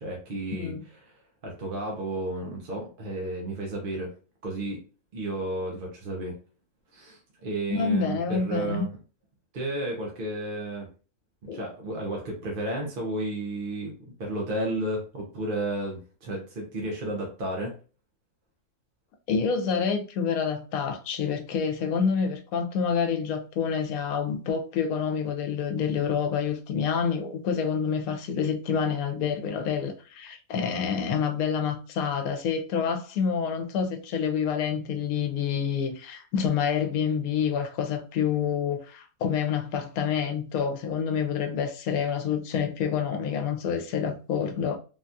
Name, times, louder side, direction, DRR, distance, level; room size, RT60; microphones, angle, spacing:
voice 1, 0.0-0.7 1.0-4.1 4.4-4.8 5.1-6.4 6.9-9.0 9.5-10.9 11.4-13.9 14.2-17.7, right 1 dB, 50° right, 0.7 m, -32 dB
voice 2, 0.5-0.8 7.7-8.9 11.5-11.6 19.3-44.8, left 6 dB, 80° left, 1.0 m, -28 dB
3.5 x 2.3 x 2.6 m
omnidirectional pair, 1.5 m